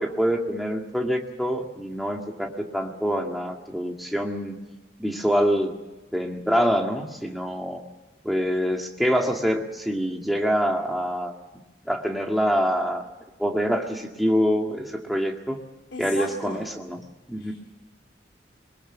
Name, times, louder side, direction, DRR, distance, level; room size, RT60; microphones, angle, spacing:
voice 1, 0.0-4.6 5.0-5.7 6.1-7.8 8.2-11.3 11.9-13.0 13.4-15.6 16.0-17.0 17.3-17.5, equal, ahead, 1 dB, 1.9 m, -25 dB
voice 2, 15.9-16.6 17.4-17.5, left 2 dB, 75° left, 2 dB, 3.8 m, -36 dB
21.5 x 20.5 x 7.1 m, 1.1 s
head